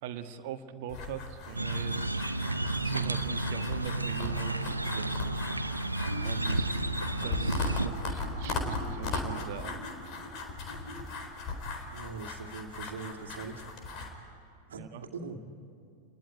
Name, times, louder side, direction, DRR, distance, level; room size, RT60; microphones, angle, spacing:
voice 1, 0.0-2.3 2.6-5.3 6.2-6.7 7.2-9.8 14.7-15.1, right 8 dB, 50° right, 7 dB, 1.5 m, -41 dB
sound 1, 0.9-14.1, left 3 dB, 40° left, 4.2 m, -38 dB
sound 2, 1.5-7.9, right 2 dB, 85° right, 0.9 m, -32 dB
sound 3, 6.0-11.1, left 1 dB, 80° left, 6.9 m, -46 dB
voice 2, 11.9-13.6 14.7-15.4, right 4 dB, 65° right, 3 dB, 2.2 m, -41 dB
29.5 x 21.0 x 9.4 m, 2.5 s
figure-of-eight pair, 90°, 0 cm